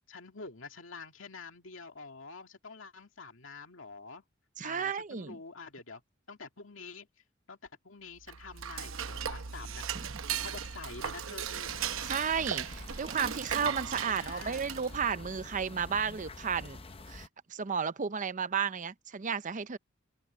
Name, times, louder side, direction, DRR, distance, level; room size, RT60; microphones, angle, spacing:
voice 1, 0.1-4.2 4.6-6.0 6.3-7.1 7.5-11.8 14.1-14.6, left 4 dB, 70° left, 2.6 m, -47 dB
voice 2, 4.6-5.4 10.1-10.2 12.0-16.8 17.1-19.8, right 6 dB, 40° right, 0.6 m, -33 dB
Dishes pots and pans / Cutlery silverware, 8.2-15.1, right 8 dB, 80° right, 0.9 m, -37 dB
sound 1, 11.6-17.3, left 2 dB, 30° left, 0.7 m, -47 dB
open air
head